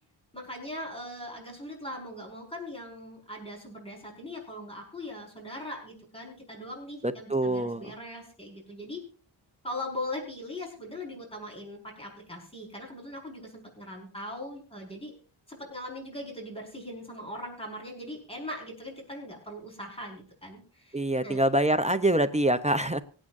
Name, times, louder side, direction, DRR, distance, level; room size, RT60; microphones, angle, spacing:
voice 1, 0.3-9.0 9.6-15.2 15.5-21.4, left 1 dB, 10° left, 0 dB, 5.0 m, -40 dB
voice 2, 7.0-7.9 20.9-23.0, right 1 dB, 15° right, 10 dB, 0.6 m, -25 dB
25.0 x 8.6 x 2.6 m, 0.39 s
wide cardioid pair, 130°, 49 cm